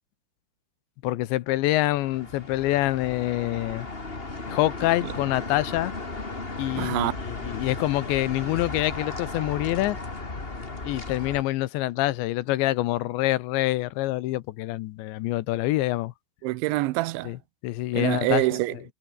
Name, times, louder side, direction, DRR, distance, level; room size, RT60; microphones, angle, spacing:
voice 1, 1.0-3.9 4.5-5.9 6.6-10.0 10.8-16.1 17.2-17.4 17.6-18.4, left 17 dB, 80° left, 3.2 m, -26 dB
sound 1, 1.6-11.4, left 3 dB, 20° left, 1.7 m, -36 dB
voice 2, 6.8-7.1 16.4-17.3 17.9-18.8, right 19 dB, 85° right, 3.2 m, -25 dB
omnidirectional pair, 5.2 m